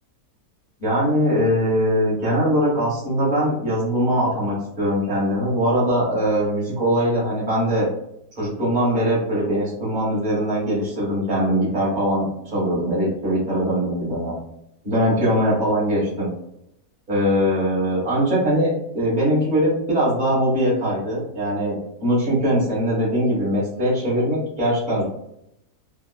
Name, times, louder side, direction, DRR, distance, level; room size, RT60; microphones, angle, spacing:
voice 1, 0.8-7.9 8.4-14.4 14.8-16.3 17.1-25.1, equal, 30° right, -7 dB, 1.6 m, -21 dB
3.7 x 2.2 x 2.2 m, 0.78 s
omnidirectional pair, 1.6 m